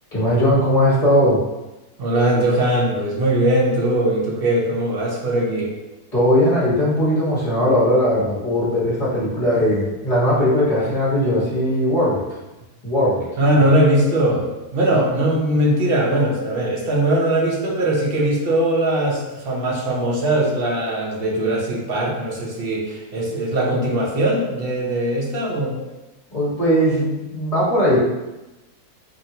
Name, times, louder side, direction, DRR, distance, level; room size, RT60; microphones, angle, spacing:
voice 1, 0.1-1.4 6.1-12.2 12.8-13.2 13.5-13.6 14.9-15.0 26.3-28.0, equal, 25° left, -8 dB, 1.4 m, -19 dB
voice 2, 2.0-5.7 13.4-14.5 14.7-25.8, right 1 dB, 50° right, -3 dB, 0.7 m, -20 dB
4.4 x 2.9 x 2.8 m, 1.0 s
omnidirectional pair, 1.7 m